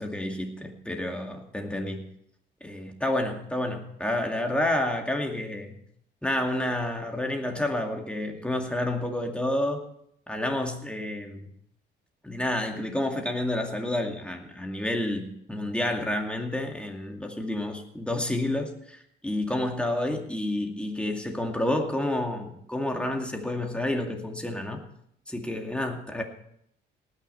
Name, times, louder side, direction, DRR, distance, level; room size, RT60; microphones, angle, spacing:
voice 1, 0.0-2.1 2.6-5.8 6.2-9.8 10.3-11.5 12.2-24.8 25.3-26.2, left 1 dB, 5° left, 3 dB, 2.2 m, -29 dB
19.0 x 6.6 x 5.6 m, 0.72 s
cardioid pair, 90°, 20 cm